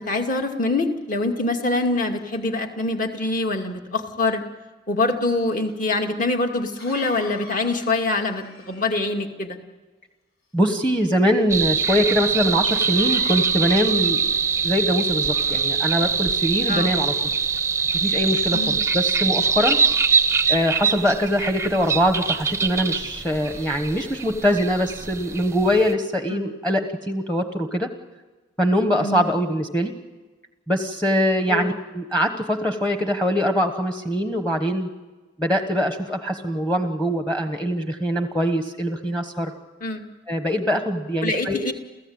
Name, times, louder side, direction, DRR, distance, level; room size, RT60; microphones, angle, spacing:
voice 1, 0.0-4.4 4.9-9.6 16.7-16.9 18.5-18.8 26.3-26.4 29.0-29.3 31.5-31.7 39.8-40.0 41.2-41.7, left 2 dB, 40° left, 3 dB, 2.4 m, -24 dB
Cough, 5.7-5.8 6.8-9.2 12.7-14.5 15.2-16.0 16.8-17.5 18.1-18.4 19.4-21.0 22.6-22.9 23.3-24.2, left 3 dB, 90° left, 5.8 m, -45 dB
voice 2, 10.5-14.3 14.6-17.1 17.9-19.8 20.5-27.9 28.6-29.9 30.7-34.9 35.4-39.5 40.3-41.7, equal, 5° left, 6 dB, 1.2 m, -23 dB
sound 1, 11.5-25.9, right 5 dB, 15° right, 0.7 m, -23 dB
29.5 x 15.5 x 8.8 m, 1.2 s
head